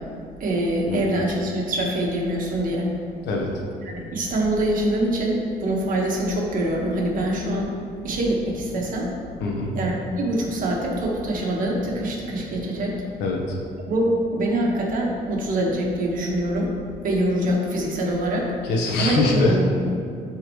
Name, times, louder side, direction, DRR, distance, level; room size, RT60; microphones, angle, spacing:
voice 1, 0.4-2.9 3.9-7.7 8.0-9.1 9.7-12.9 13.9-16.7 17.0-18.5 19.0-19.7, right 1 dB, 55° right, -2 dB, 1.6 m, -24 dB
voice 2, 9.4-9.7 13.2-13.6 18.6-19.7, left 2 dB, 80° left, 0 dB, 1.3 m, -23 dB
12.0 x 4.3 x 3.2 m, 2.4 s
cardioid pair, 110°, 17 cm